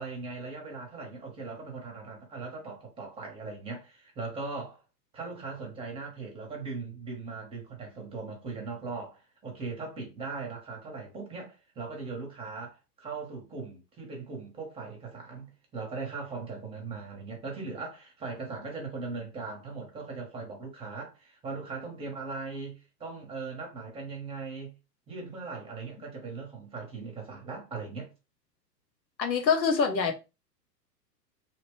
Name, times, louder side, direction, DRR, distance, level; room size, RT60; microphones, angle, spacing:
voice 1, 0.0-4.8 5.1-24.7 25.1-28.1, right 4 dB, 10° right, 0.9 m, -39 dB
voice 2, 29.2-30.1, left 5 dB, 85° left, 0.9 m, -25 dB
2.9 x 2.2 x 3.0 m
figure-of-eight pair, 110°, 50 cm